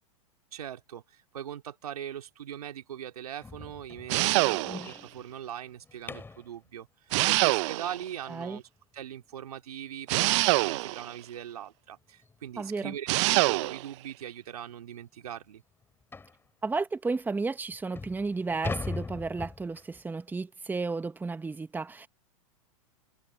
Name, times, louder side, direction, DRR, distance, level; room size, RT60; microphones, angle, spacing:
voice 1, 0.5-6.9 7.2-8.6 8.9-15.6, right 10 dB, 80° right, 3.0 m, -41 dB
sound 1, 3.4-6.5 9.3-9.4 9.9-10.1 10.4-10.5 11.0-11.1 12.2-12.4 12.7-12.9 13.6-13.7 14.0-14.1 14.6-14.7 16.1-16.4 17.1-17.2 17.7-20.0, left 4 dB, 10° left, 3.8 m, -40 dB
sound 2, 4.1-5.0 7.1-8.1 10.1-11.1 13.1-13.9, right 23 dB, 55° right, 0.7 m, -25 dB
voice 2, 8.3-8.6 12.6-12.9 16.6-22.1, right 4 dB, 10° right, 1.4 m, -33 dB
hypercardioid pair, 110°, 19 cm